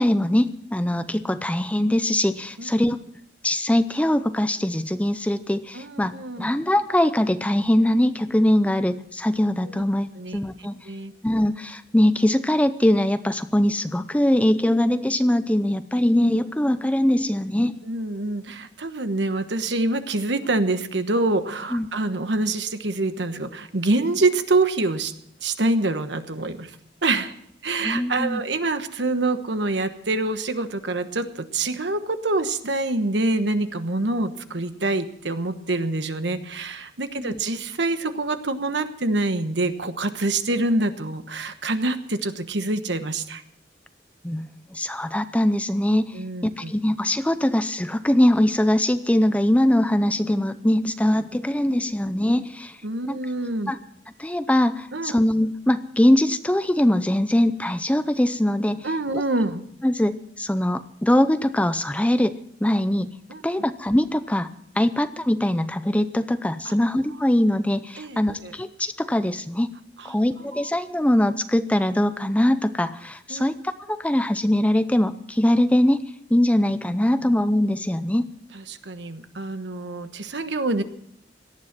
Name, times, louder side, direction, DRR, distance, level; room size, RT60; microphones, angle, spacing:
voice 1, 0.0-3.0 3.4-6.1 6.4-10.1 10.3-10.8 11.2-17.8 21.7-21.9 27.8-28.4 37.2-37.4 44.2-52.7 53.1-53.2 53.7-53.8 54.2-58.9 59.8-63.1 63.4-64.5 64.8-69.7 70.1-73.6 73.9-76.0 76.3-78.3, left 1 dB, 5° left, 11 dB, 0.6 m, -22 dB
voice 2, 5.7-6.5 9.8-9.9 10.2-11.1 17.9-25.1 25.4-26.7 27.0-27.3 27.6-43.4 46.1-46.7 52.8-53.7 54.9-55.1 58.8-59.6 63.3-63.4 66.6-66.7 68.0-68.5 70.0-70.1 70.5-70.7 73.3-73.4 78.5-80.8, right 2 dB, 70° right, 9 dB, 1.2 m, -26 dB
18.0 x 12.5 x 6.0 m, 0.69 s
head